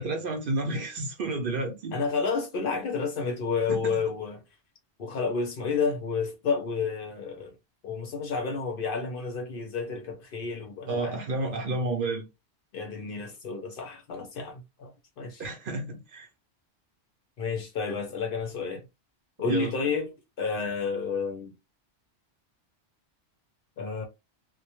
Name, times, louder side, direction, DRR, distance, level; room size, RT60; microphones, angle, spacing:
voice 1, 0.0-2.0 3.7-4.0 10.9-12.2 15.4-16.3 19.4-19.7, right 2 dB, 60° right, 0.7 m, -31 dB
voice 2, 1.9-4.4 5.0-7.6 7.8-11.5 12.7-15.4 17.4-18.9 19.4-20.1 20.4-21.5 23.8-24.1, left 5 dB, 60° left, 0.7 m, -30 dB
2.1 x 2.1 x 2.8 m
omnidirectional pair, 1.2 m